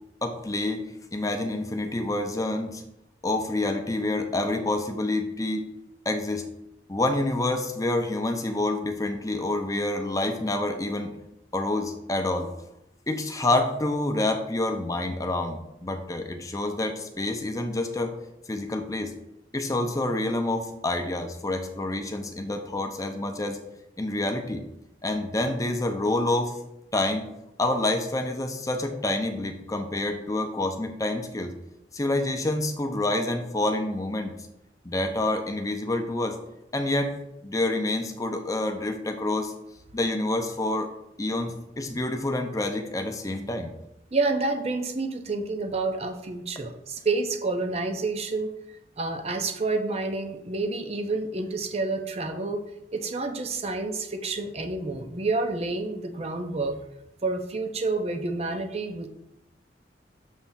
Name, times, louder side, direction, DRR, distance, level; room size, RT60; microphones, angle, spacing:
voice 1, 0.2-0.8 1.1-2.8 3.2-5.7 6.0-6.4 6.9-11.1 11.5-12.5 13.1-18.1 18.5-19.1 19.5-23.6 24.0-24.6 25.0-26.6 26.9-27.2 27.6-31.5 31.9-34.3 34.8-36.4 36.7-37.1 37.4-39.5 39.9-40.9 41.2-43.7, left 2 dB, 20° left, 5 dB, 0.7 m, -27 dB
voice 2, 44.1-48.5 49.0-52.6 52.9-56.8 57.2-59.1, right 3 dB, 35° right, 7 dB, 0.7 m, -29 dB
7.3 x 3.3 x 5.7 m, 0.85 s
head